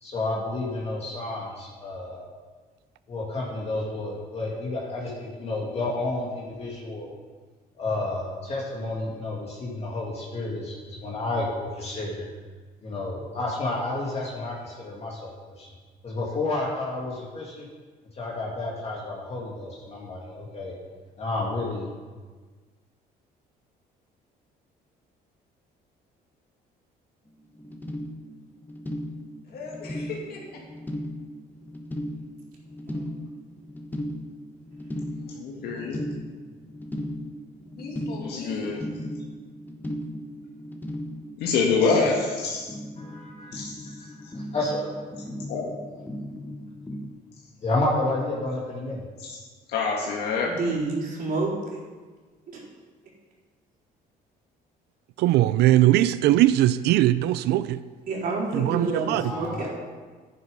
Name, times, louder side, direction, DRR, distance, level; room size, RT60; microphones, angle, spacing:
voice 1, 0.0-2.3 3.1-7.1 7.8-12.3 12.8-15.7 16.0-17.7 18.1-20.7 21.2-21.9 43.0-43.5 44.0-44.1 44.5-44.9 47.6-49.1 59.1-59.7, left 2 dB, 40° left, -4 dB, 2.5 m, -30 dB
sound 1, 27.3-27.4 27.5-47.1, left 1 dB, 10° left, 1.3 m, -37 dB
voice 2, 29.5-30.6 37.6-38.7, left 3 dB, 65° left, -3 dB, 2.6 m, -39 dB
voice 3, 32.9-33.2 50.4-51.8 52.5-52.6 58.1-59.7, right 3 dB, 60° right, -5 dB, 4.4 m, -29 dB
voice 4, 35.3-36.0 38.2-38.8 41.4-42.7 43.5-43.9 45.5-45.7 49.2-49.4 49.7-50.6, left 4 dB, 80° left, -2 dB, 1.7 m, -26 dB
voice 5, 55.2-57.8 58.5-59.3, right 14 dB, 80° right, 15 dB, 0.5 m, -20 dB
11.0 x 10.0 x 5.4 m, 1.4 s
cardioid pair, 110°, 17 cm